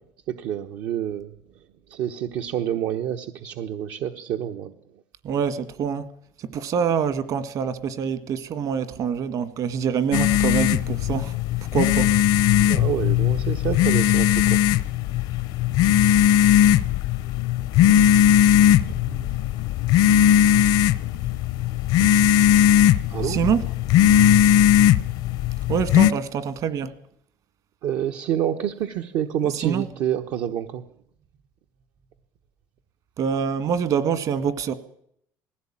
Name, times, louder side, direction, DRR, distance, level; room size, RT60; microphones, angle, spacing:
voice 1, 0.3-1.3 1.9-4.7 12.5-14.6 23.1-23.4 27.8-30.8, right 10 dB, 75° right, 5 dB, 1.2 m, -28 dB
voice 2, 5.2-6.0 6.5-11.3 11.7-12.1 18.9-19.3 22.0-22.1 23.3-23.6 25.7-26.9 29.6-29.8 33.2-34.7, right 7 dB, 55° right, 13 dB, 1.9 m, -25 dB
sound 1, 10.1-26.1, left 10 dB, 80° left, 0.9 m, -18 dB
19.0 x 16.0 x 8.8 m, 0.70 s
cardioid pair, 115°, 7 cm